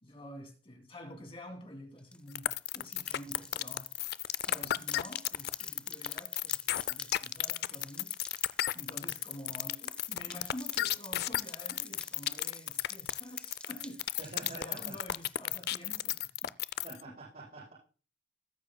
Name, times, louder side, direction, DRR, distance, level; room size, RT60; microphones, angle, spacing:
voice 1, 0.0-3.9 4.5-8.1 8.7-16.5 16.9-17.2, equal, 30° left, 2.7 m, -48 dB
sound 1, 2.0-16.2, left 2 dB, 5° left, 0.5 m, -51 dB
sound 2, 2.3-17.0, left 13 dB, 60° left, 0.4 m, -33 dB
voice 2, 14.2-14.9 16.8-17.7, right 3 dB, 50° right, 7.3 m, -47 dB
20.0 x 9.8 x 2.2 m
head